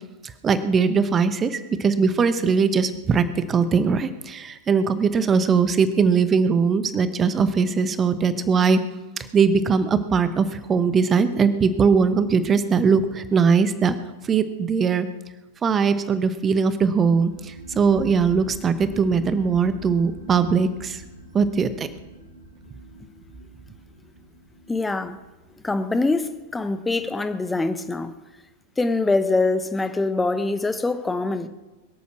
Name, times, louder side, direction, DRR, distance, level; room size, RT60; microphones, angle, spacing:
voice 1, 0.4-8.8 9.3-13.9 14.3-15.1 15.6-21.0 21.3-21.9, right 5 dB, 20° right, 12 dB, 1.0 m, -20 dB
sound 1, 17.0-28.1, right 2 dB, 85° left, 4.3 m, -43 dB
voice 2, 24.7-25.2 25.6-28.1 28.8-31.5, left 3 dB, 10° left, 10 dB, 1.0 m, -24 dB
22.5 x 8.4 x 6.2 m, 1.1 s
figure-of-eight pair, 90°, 0 cm